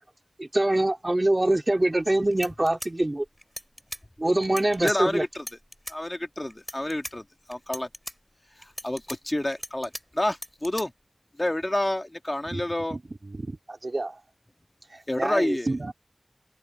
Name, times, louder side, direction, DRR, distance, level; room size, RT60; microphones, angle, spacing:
voice 1, 0.4-3.2 4.2-5.2, right 1 dB, 30° right, 3.2 m, -23 dB
sound 1, 2.0-2.1 2.3-4.0 4.4-4.9 5.3-6.0 6.5-7.1 7.5-8.1 8.6-10.0 10.3-10.8, equal, 5° left, 4.5 m, -38 dB
voice 2, 4.8-5.4 5.9-7.9 8.6-10.9 11.4-13.0 15.1-15.7, left 1 dB, 25° left, 1.9 m, -29 dB
voice 3, 12.9-14.2 14.9-15.9, right 2 dB, 55° right, 3.7 m, -32 dB
wide cardioid pair, 70°, 0 cm